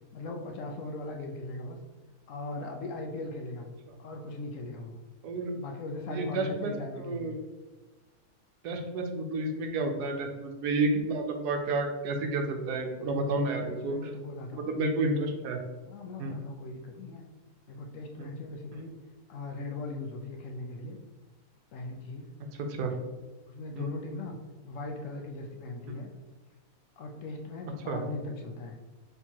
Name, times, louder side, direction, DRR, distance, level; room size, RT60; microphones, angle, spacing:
voice 1, 0.1-1.8 2.3-3.7 4.0-5.0 5.6-7.3 13.0-14.7 15.8-17.3 17.7-18.9 19.3-21.0 21.7-22.3 22.7-22.8 23.5-24.4 24.6-26.1 27.0-28.8, left 2 dB, 65° left, 2 dB, 0.8 m, -39 dB
voice 2, 5.2-5.5 6.1-6.7 7.0-7.3 8.6-14.1 14.5-15.6 16.2-16.4 18.2-18.3 22.7-22.9 23.8-23.9 27.9-28.0, right 2 dB, 85° right, 4 dB, 1.2 m, -30 dB
4.5 x 3.5 x 2.8 m, 1.2 s
omnidirectional pair, 1.7 m